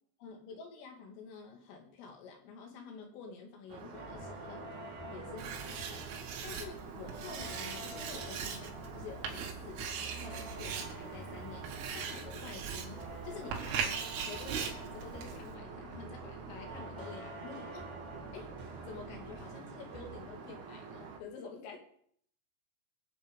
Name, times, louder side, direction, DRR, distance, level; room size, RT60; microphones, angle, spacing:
voice 1, 0.2-4.7 5.1-6.1 6.4-17.9 18.3-18.5 18.8-21.8, left 5 dB, 80° left, 2 dB, 4.9 m, -49 dB
Aircraft, 3.7-21.2, right 4 dB, 55° right, 2.5 m, -48 dB
sound 1, 3.9-19.7 19.9-20.4, right 2 dB, 10° right, 2.0 m, -48 dB
Writing, 5.4-15.6, right 7 dB, 80° right, 4.5 m, -40 dB
24.0 x 8.1 x 5.3 m, 0.65 s
omnidirectional pair, 5.8 m